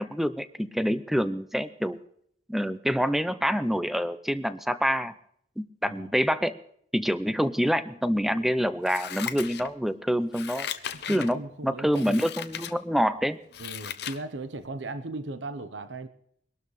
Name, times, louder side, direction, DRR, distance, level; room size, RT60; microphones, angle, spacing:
voice 1, 0.0-2.0 2.5-5.1 5.6-6.6 6.9-10.7 11.1-13.4, equal, ahead, 0.6 m, -26 dB
Scissors, 8.8-9.9 10.3-11.3 11.9-12.7 13.2-14.2 14.6-14.7, left 9 dB, 60° left, 0.7 m, -37 dB
voice 2, 10.9-12.2 13.6-16.1, right 2 dB, 85° right, 0.9 m, -37 dB
23.0 x 12.0 x 3.2 m
head